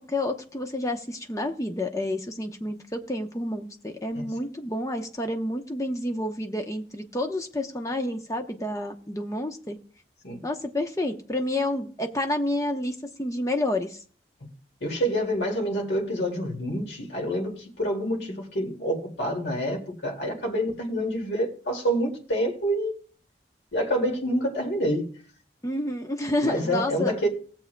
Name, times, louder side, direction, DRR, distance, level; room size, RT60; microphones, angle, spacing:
voice 1, 0.1-9.8 10.4-14.0 25.6-27.1, left 1 dB, 20° left, 0.9 m, -29 dB
voice 2, 14.8-23.0 23.7-25.1 26.4-27.3, equal, 80° left, 2.3 m, -27 dB
19.5 x 7.2 x 2.2 m
head